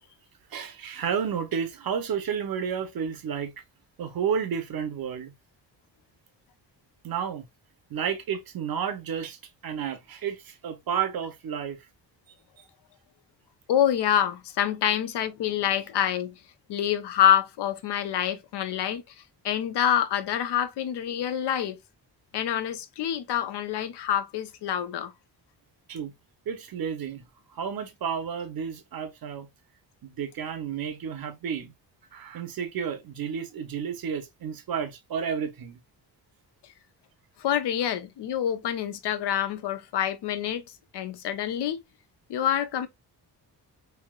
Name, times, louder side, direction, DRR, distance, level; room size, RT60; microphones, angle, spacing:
voice 1, 0.5-3.5 4.0-5.3 7.0-7.5 7.9-11.8 25.9-26.1 26.5-27.2 27.5-29.5 30.0-31.7 32.1-35.8, right 7 dB, 60° right, 0.7 m, -31 dB
voice 2, 13.7-16.3 16.7-19.0 19.4-21.8 22.3-25.1 37.4-40.6 40.9-41.8 42.3-42.9, left 10 dB, 75° left, 0.6 m, -26 dB
3.3 x 2.7 x 2.2 m
cardioid pair, 110°, 40 cm